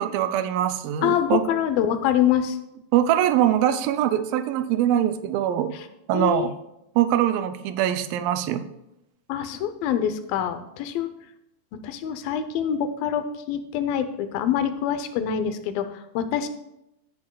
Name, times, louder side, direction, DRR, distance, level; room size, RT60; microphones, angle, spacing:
voice 1, 0.0-1.4 2.9-5.7 6.1-6.5 7.0-8.6, right 11 dB, 80° right, 9 dB, 2.3 m, -22 dB
voice 2, 1.0-2.6 5.7-5.8 6.1-6.5 9.3-11.1 11.7-16.5, left 9 dB, 80° left, 10 dB, 2.4 m, -25 dB
14.5 x 8.6 x 2.3 m, 0.85 s
omnidirectional pair, 4.1 m